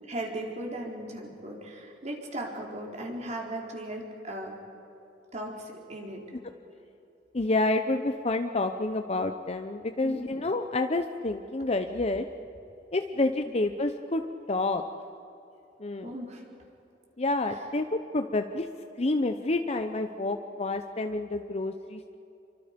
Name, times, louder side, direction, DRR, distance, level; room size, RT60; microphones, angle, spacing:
voice 1, 0.1-4.5 5.3-6.2 10.0-10.2 16.0-16.4, right 1 dB, 40° right, 0 dB, 3.7 m, -37 dB
voice 2, 7.3-12.3 12.9-14.2 14.5-14.8 15.8-16.1 17.2-18.7 19.0-22.2, left 2 dB, 35° left, 7 dB, 0.8 m, -28 dB
28.5 x 24.0 x 5.2 m, 2.9 s
head